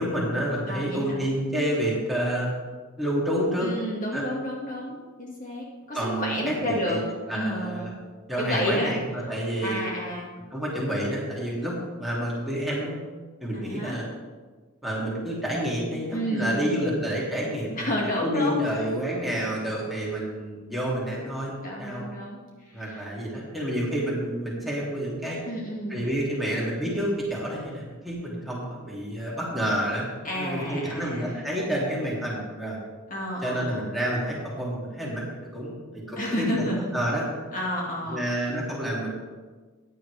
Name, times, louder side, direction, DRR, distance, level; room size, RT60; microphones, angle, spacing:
voice 1, 0.0-2.5 3.0-3.7 4.1-4.2 5.9-7.0 7.3-7.9 8.3-9.8 10.5-13.0 13.4-14.1 14.8-17.9 18.2-21.5 21.8-22.1 22.7-25.4 25.9-32.8 33.4-37.3 38.0-39.2, equal, ahead, -6 dB, 2.7 m, -29 dB
voice 2, 0.7-1.3 3.6-7.0 7.3-7.9 8.4-9.0 9.6-10.3 13.6-14.0 16.1-17.0 17.8-18.6 21.6-22.4 22.7-23.0 25.5-26.0 30.2-31.3 33.1-33.8 36.2-36.8 37.5-38.3, equal, 35° left, -3 dB, 2.0 m, -30 dB
15.0 x 10.0 x 3.4 m, 1.4 s
head